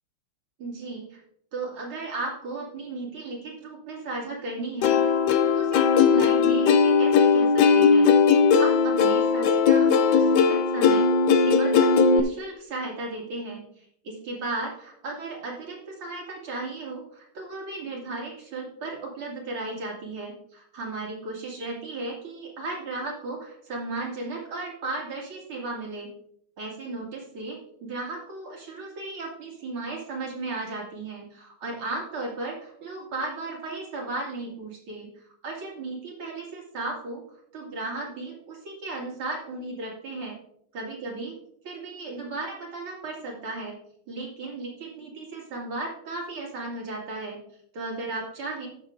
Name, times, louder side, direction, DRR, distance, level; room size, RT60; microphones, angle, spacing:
voice 1, 0.6-1.2 1.5-11.1 11.4-26.1 26.6-35.1 35.4-37.2 37.5-40.4 40.7-41.3 41.6-43.8 44.1-47.4 47.7-48.7, right 2 dB, 85° right, -2 dB, 3.1 m, -35 dB
Plucked string instrument, 4.8-12.2, left 5 dB, 70° left, 1.2 m, -19 dB
17.5 x 6.6 x 2.5 m, 0.71 s
omnidirectional pair, 2.3 m